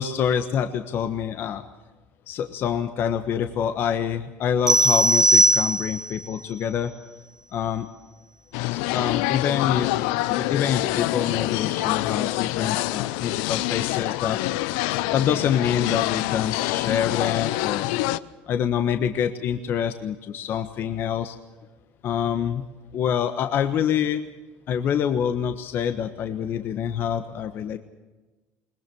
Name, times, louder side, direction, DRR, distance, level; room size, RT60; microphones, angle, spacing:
voice 1, 0.0-1.6 2.3-6.9 7.5-7.9 8.7-10.0 10.3-14.4 15.1-17.9 18.5-21.4 22.0-22.6 22.9-24.3 24.7-27.8, left 8 dB, 50° left, 9 dB, 1.3 m, -26 dB
sound 1, 4.7-6.2, right 1 dB, 15° right, 0.8 m, -18 dB
sound 2, 8.5-18.2, left 17 dB, 90° left, 0.7 m, -26 dB
21.5 x 21.0 x 7.0 m, 1.2 s
cardioid pair, 130°, 5 cm